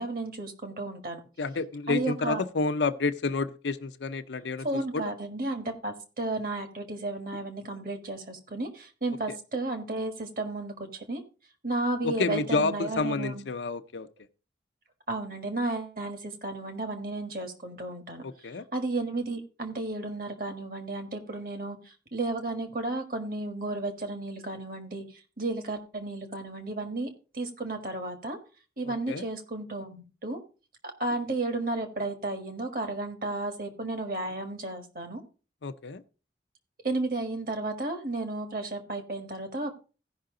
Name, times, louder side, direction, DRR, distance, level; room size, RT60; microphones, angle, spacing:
voice 1, 0.0-1.2 1.9-2.4 4.6-11.2 11.6-13.4 15.1-28.4 28.8-30.4 30.8-35.2 36.8-39.7, right 2 dB, 50° right, 1.6 m, -33 dB
voice 2, 1.4-4.7 4.9-5.0 12.0-14.1 18.2-18.6 29.1-29.2 35.6-36.0, left 3 dB, 85° left, 0.6 m, -29 dB
15.5 x 5.6 x 3.7 m
head